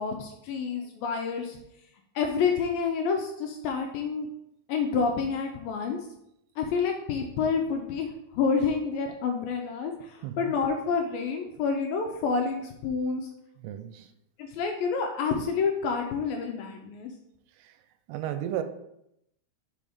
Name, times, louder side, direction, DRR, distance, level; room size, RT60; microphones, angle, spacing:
voice 1, 0.0-1.6 2.2-4.3 4.7-6.0 6.6-8.1 8.3-13.3 14.4-17.1, left 5 dB, 80° left, 3 dB, 2.1 m, -28 dB
voice 2, 13.6-14.1 18.1-18.6, right 11 dB, 85° right, 9 dB, 2.5 m, -33 dB
5.5 x 5.3 x 4.9 m, 0.80 s
omnidirectional pair, 4.7 m